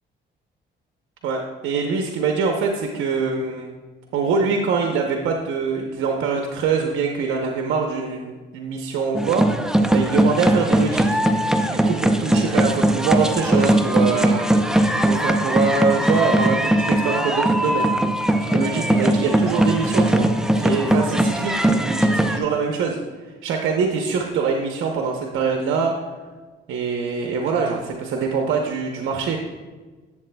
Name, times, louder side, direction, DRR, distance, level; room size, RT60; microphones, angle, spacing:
voice 1, 1.2-3.7 4.1-11.2 11.7-14.5 15.0-17.9 18.5-20.3 20.6-23.0 23.4-26.0 26.7-29.4, right 5 dB, 85° right, 2 dB, 0.7 m, -24 dB
sound 1, 9.1-22.4, right 1 dB, 5° right, 0.6 m, -19 dB
11.5 x 7.4 x 2.2 m, 1.3 s
cardioid pair, 90°, 20 cm